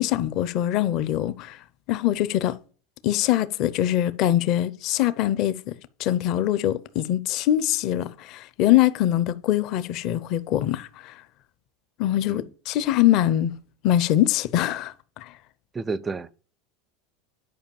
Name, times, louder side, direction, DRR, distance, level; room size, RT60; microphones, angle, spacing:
voice 1, 0.0-1.6 1.9-2.6 3.0-5.6 6.0-11.1 12.0-13.5 13.8-15.3, left 13 dB, 45° left, 0.7 m, -23 dB
voice 2, 15.7-16.4, right 4 dB, 15° right, 0.4 m, -31 dB
10.0 x 5.3 x 7.0 m
supercardioid pair, 155°, 0 cm